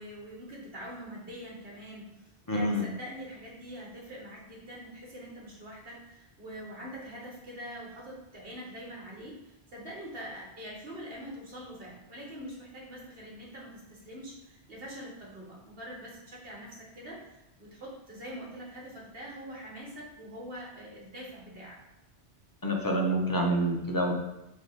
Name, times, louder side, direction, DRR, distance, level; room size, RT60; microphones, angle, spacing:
voice 1, 0.0-21.8, equal, 60° right, -3 dB, 1.9 m, -44 dB
voice 2, 2.5-2.8 22.6-24.1, right 1 dB, 20° left, 0 dB, 0.8 m, -27 dB
6.1 x 3.1 x 5.2 m, 0.90 s
omnidirectional pair, 1.1 m